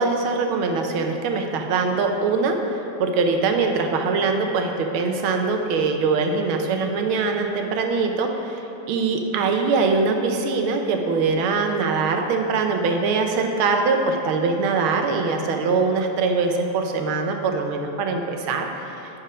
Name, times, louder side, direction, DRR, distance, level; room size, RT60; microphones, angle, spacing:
voice 1, 0.0-8.6 8.9-18.7 19.0-19.1, right 4 dB, 80° right, 4 dB, 1.5 m, -22 dB
10.0 x 4.5 x 4.9 m, 2.9 s
omnidirectional pair, 2.3 m